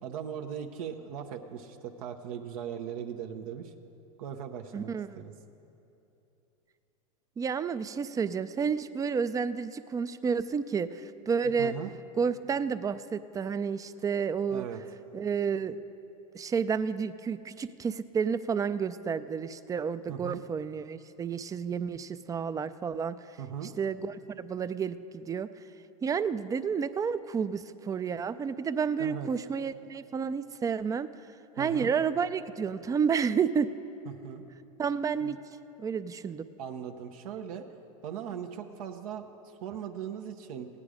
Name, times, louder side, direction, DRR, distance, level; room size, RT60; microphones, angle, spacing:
voice 1, 0.0-3.7 4.2-5.3 11.6-11.9 14.5-14.8 20.1-20.4 23.4-23.7 29.0-29.3 31.6-31.9 34.1-34.4 35.2-35.3 36.6-37.6 38.0-39.3 39.6-40.7, right 8 dB, 75° right, 4 dB, 0.8 m, -39 dB
voice 2, 4.7-5.2 7.4-11.7 12.2-14.7 15.1-15.8 16.3-23.2 23.8-25.5 26.0-31.1 31.6-33.7 34.8-35.4 35.8-36.5, right 6 dB, 20° right, 14 dB, 0.4 m, -30 dB
16.5 x 9.8 x 4.9 m, 2.9 s
hypercardioid pair, 100°, 18 cm